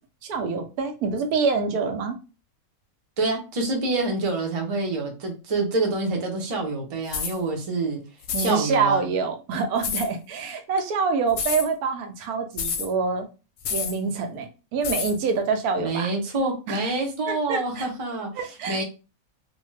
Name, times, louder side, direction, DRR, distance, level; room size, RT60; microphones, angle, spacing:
voice 1, 0.2-2.2 8.3-13.3 13.7-16.1 16.7-16.8 17.3-17.9 18.4-18.8, right 5 dB, 90° right, 1.1 m, -26 dB
voice 2, 3.2-8.0 8.4-9.1 15.8-18.8, right 3 dB, 35° right, 0.5 m, -27 dB
sound 1, 7.1-7.4 8.2-8.5 9.8-10.1 11.3-11.7 12.6-12.9 13.6-14.0 14.8-15.2, left 7 dB, 70° left, 0.9 m, -28 dB
2.7 x 2.2 x 3.1 m
omnidirectional pair, 1.5 m